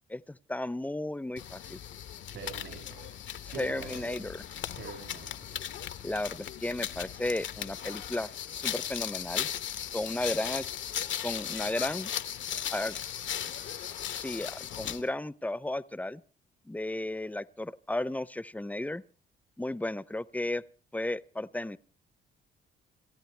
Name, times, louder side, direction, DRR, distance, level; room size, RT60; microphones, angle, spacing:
voice 1, 0.1-1.8 3.6-4.4 6.0-9.5 9.9-10.9 11.2-12.1 12.7-13.0 13.6-16.2 16.6-19.0 19.6-20.6 20.9-21.8, left 1 dB, 10° left, 17 dB, 0.7 m, -34 dB
sound 1, 1.4-15.1, left 10 dB, 70° left, 1.0 m, -37 dB
voice 2, 2.3-3.1 3.5-4.1 4.7-5.6, right 6 dB, 80° right, 3 dB, 6.3 m, -44 dB
28.5 x 13.5 x 3.4 m, 0.37 s
cardioid pair, 90°, 20 cm